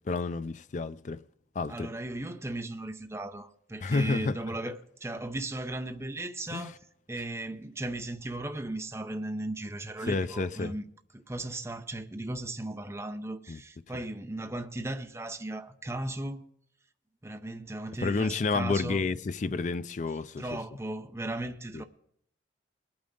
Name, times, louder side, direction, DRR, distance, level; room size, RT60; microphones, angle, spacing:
voice 1, 0.1-1.2 1.6-1.9 3.8-4.4 6.5-6.7 10.1-10.7 13.5-13.6 18.0-20.6 21.7-21.8, left 3 dB, 40° left, 0.4 m, -30 dB
voice 2, 1.7-6.7 7.1-10.8 11.1-16.4 17.2-19.0 20.4-21.8, right 1 dB, 15° right, 0.6 m, -36 dB
20.5 x 8.8 x 3.8 m
head